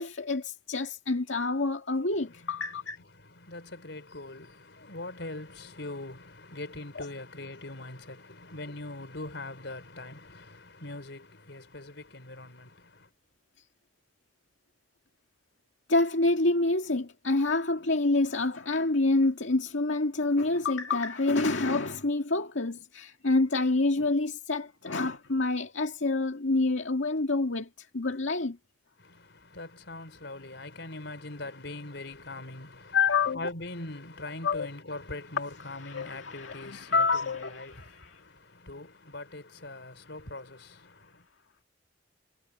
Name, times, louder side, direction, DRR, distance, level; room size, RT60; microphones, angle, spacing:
voice 1, 0.0-3.0 7.0-7.1 15.9-28.6 32.9-33.4 34.4-34.7 35.9-38.2, left 3 dB, 90° left, 2.0 m, -27 dB
voice 2, 2.1-2.5 3.1-13.1 29.0-33.0 33.3-41.3, left 2 dB, 70° left, 4.3 m, -42 dB
head